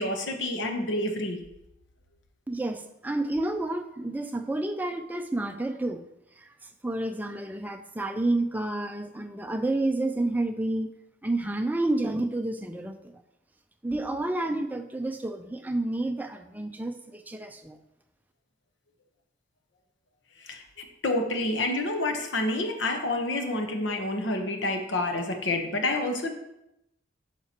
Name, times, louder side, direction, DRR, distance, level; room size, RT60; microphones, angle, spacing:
voice 1, 0.0-1.4 20.4-26.3, left 2 dB, 80° left, 5 dB, 1.0 m, -28 dB
voice 2, 2.5-6.0 6.8-10.9 11.2-13.1 13.8-17.8, right 2 dB, 10° right, 6 dB, 0.4 m, -30 dB
9.0 x 5.8 x 2.9 m, 0.86 s
head